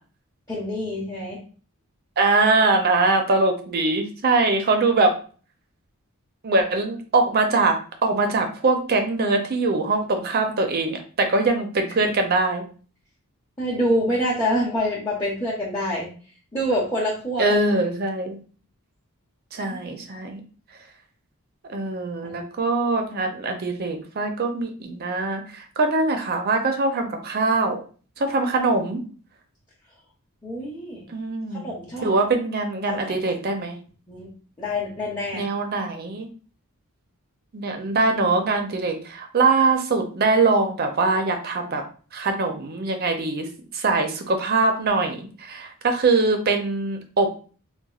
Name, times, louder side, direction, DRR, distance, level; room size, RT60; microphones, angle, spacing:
voice 1, 0.5-1.4 13.6-16.1 16.5-17.8 19.7-19.8 30.4-31.1 31.5-32.1 32.8-33.2 34.1-34.3 34.6-35.5, equal, 15° left, -5 dB, 0.7 m, -26 dB
voice 2, 2.2-5.1 6.4-12.6 17.4-18.4 19.5-20.4 21.7-27.8 28.2-29.0 31.1-31.7 32.0-33.8 35.3-36.3 37.5-41.8 42.1-43.5 43.7-47.3, right 3 dB, 45° right, 5 dB, 0.5 m, -22 dB
4.1 x 2.2 x 2.3 m, 0.40 s
head